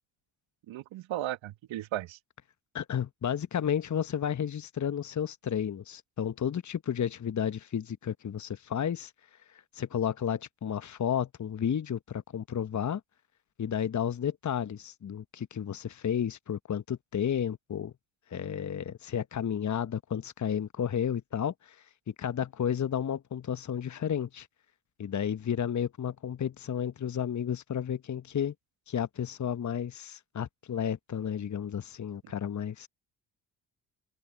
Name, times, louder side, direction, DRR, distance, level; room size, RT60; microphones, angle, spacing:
voice 1, 0.7-2.2, right 14 dB, 65° right, 2.0 m, -35 dB
voice 2, 2.7-9.1 9.5-13.0 13.6-17.9 18.3-21.8 22.1-24.5 25.0-28.5 28.9-32.9, left 8 dB, 35° left, 1.2 m, -32 dB
open air
hypercardioid pair, 45°, 49 cm